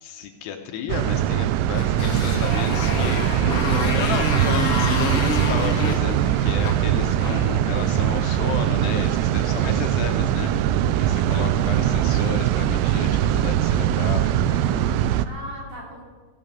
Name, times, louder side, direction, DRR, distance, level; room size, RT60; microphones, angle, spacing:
voice 1, 0.0-3.2 3.9-14.9, left 7 dB, 80° left, 5 dB, 2.8 m, -33 dB
sound 1, 0.9-15.3, right 11 dB, 85° right, 2.5 m, -21 dB
Motorcycle, 1.7-8.2, left 5 dB, 50° left, 1.9 m, -29 dB
voice 2, 2.4-4.6 15.0-16.0, right 1 dB, 65° right, -4 dB, 5.0 m, -37 dB
16.0 x 7.2 x 6.6 m, 1.4 s
omnidirectional pair, 5.1 m